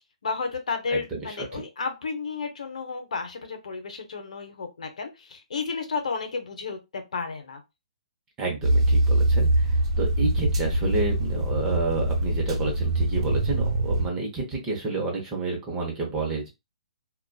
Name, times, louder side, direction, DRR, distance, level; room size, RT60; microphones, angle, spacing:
voice 1, 0.2-7.6, left 4 dB, 75° left, 6 dB, 0.7 m, -32 dB
voice 2, 0.9-1.6 8.4-16.5, right 3 dB, 15° right, -1 dB, 0.7 m, -30 dB
sound 1, 8.6-14.1, right 1 dB, 50° right, 0.9 m, -23 dB
2.4 x 2.3 x 2.2 m, 0.23 s
hypercardioid pair, 160°, 4 cm